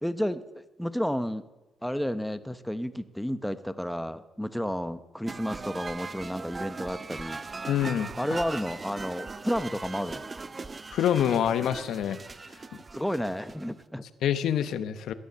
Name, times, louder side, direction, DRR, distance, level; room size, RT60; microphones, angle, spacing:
voice 1, 0.0-1.4 1.8-7.4 8.2-10.2 12.9-14.0, equal, ahead, 11 dB, 0.9 m, -31 dB
sound 1, 5.3-13.8, right 3 dB, 30° right, 0.6 m, -39 dB
voice 2, 7.7-8.1 10.9-12.2 14.2-15.1, left 9 dB, 75° left, 11 dB, 0.9 m, -26 dB
16.0 x 10.5 x 6.8 m, 1.1 s
cardioid pair, 90°, 0 cm